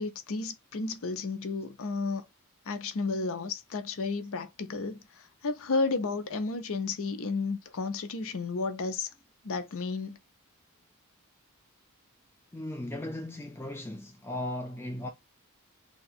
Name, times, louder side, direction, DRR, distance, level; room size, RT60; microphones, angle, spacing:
voice 1, 0.0-2.2 2.7-5.0 5.4-9.1 9.4-10.2, left 3 dB, 65° left, 0.6 m, -32 dB
voice 2, 12.5-15.1, left 1 dB, 10° left, 0.4 m, -37 dB
2.8 x 2.3 x 4.0 m
head